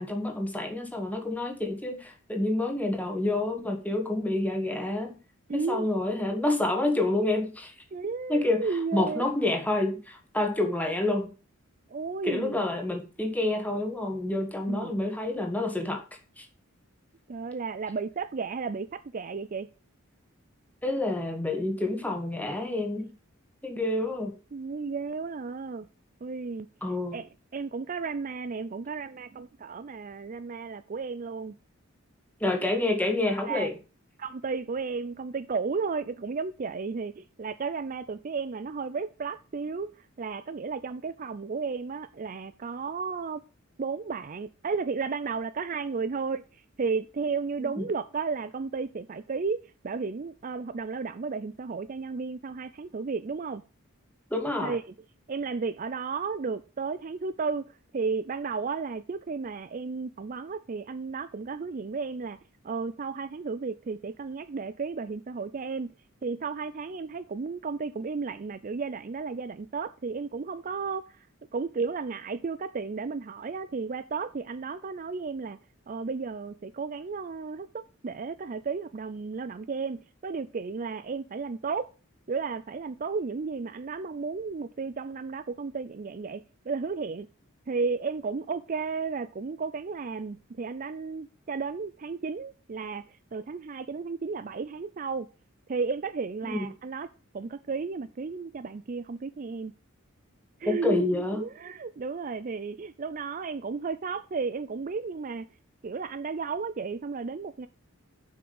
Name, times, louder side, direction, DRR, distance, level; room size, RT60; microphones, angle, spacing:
voice 1, 0.0-5.2 5.5-7.7 8.3-8.6 8.9-11.3 12.2-16.0 16.4-16.5 20.8-23.1 23.6-24.3 26.8-27.2 32.4-33.7 47.8-47.9 54.3-54.8 96.4-96.7 100.7-101.4, left 2 dB, 10° left, 1.7 m, -28 dB
voice 2, 5.5-5.9 7.9-9.2 11.9-12.6 14.7-15.0 17.3-19.7 24.5-25.9 26.2-26.7 27.1-31.6 33.5-33.7 34.2-43.4 43.8-53.6 54.6-54.8 55.3-57.6 57.9-62.4 62.6-65.9 66.2-71.3 71.5-75.6 75.9-81.9 82.3-87.3 87.7-95.3 95.7-97.1 97.3-99.7 100.6-105.5 105.8-107.7, right 4 dB, 40° right, 0.4 m, -33 dB
7.4 x 6.0 x 7.0 m
head